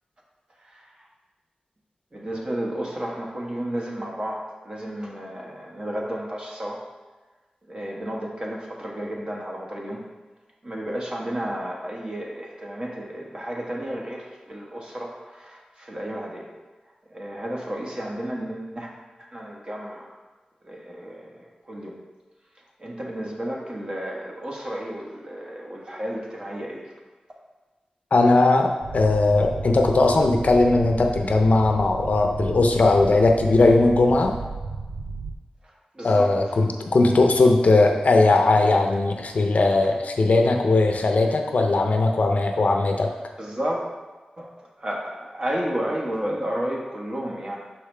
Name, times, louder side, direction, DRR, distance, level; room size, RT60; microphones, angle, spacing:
voice 1, 0.6-1.1 2.1-6.8 7.7-10.0 10.6-16.5 17.1-18.9 19.3-20.2 20.6-21.4 21.7-22.0 22.8-26.9 35.9-36.3 43.4-43.8 44.4-44.5 44.8-47.6, right 1 dB, 35° right, -2 dB, 1.2 m, -32 dB
voice 2, 28.1-34.4 36.0-43.1, left 2 dB, 65° left, 3 dB, 0.6 m, -19 dB
sound 1, 28.8-35.3, right 4 dB, 75° right, 0.5 m, -34 dB
6.1 x 4.8 x 3.3 m, 1.3 s
wide cardioid pair, 70°, 3 cm